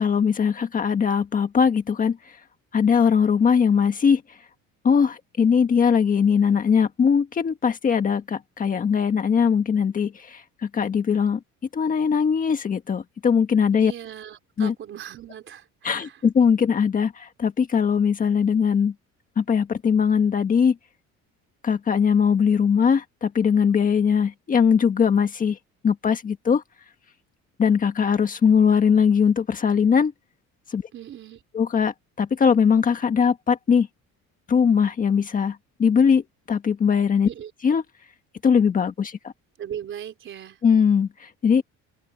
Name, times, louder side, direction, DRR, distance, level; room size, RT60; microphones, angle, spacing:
voice 1, 0.0-2.4 2.7-4.4 4.8-11.4 11.7-13.9 14.6-14.7 15.8-18.9 19.4-20.8 21.6-25.6 25.8-26.6 27.6-30.1 30.7-30.8 31.5-33.9 34.5-37.3 37.6-37.8 38.4-39.3 40.6-41.6, left 6 dB, 30° left, 1.5 m, -20 dB
voice 2, 13.7-16.2 30.9-31.4 37.2-37.5 39.6-40.6, right 10 dB, 40° right, 3.9 m, -38 dB
open air
cardioid pair, 160°, 29 cm